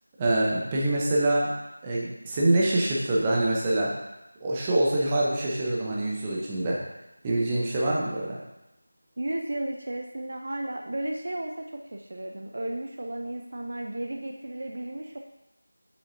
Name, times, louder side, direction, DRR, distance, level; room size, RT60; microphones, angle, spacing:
voice 1, 0.2-1.5 1.8-3.9 4.4-6.8 7.2-8.4, right 1 dB, 15° right, -5 dB, 0.9 m, -25 dB
voice 2, 9.2-11.5 11.9-15.2, right 1 dB, 45° right, 2 dB, 0.5 m, -33 dB
7.6 x 6.9 x 2.7 m, 0.91 s
figure-of-eight pair, 170°, 0 cm